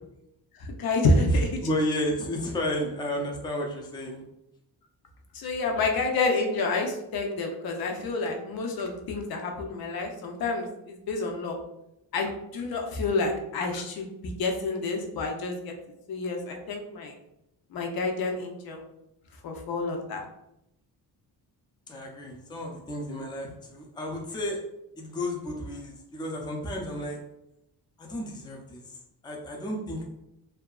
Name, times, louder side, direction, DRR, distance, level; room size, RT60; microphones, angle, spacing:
voice 1, 0.5-1.7 5.3-11.6 12.1-15.7 16.1-17.1 17.7-18.8 19.4-20.2, left 2 dB, 65° left, 2 dB, 0.6 m, -28 dB
voice 2, 1.6-4.2 21.9-24.6 25.0-27.2 28.0-29.0 29.2-30.0, left 1 dB, 10° left, 0 dB, 0.3 m, -32 dB
2.7 x 2.4 x 2.3 m, 0.85 s
wide cardioid pair, 135°, 39 cm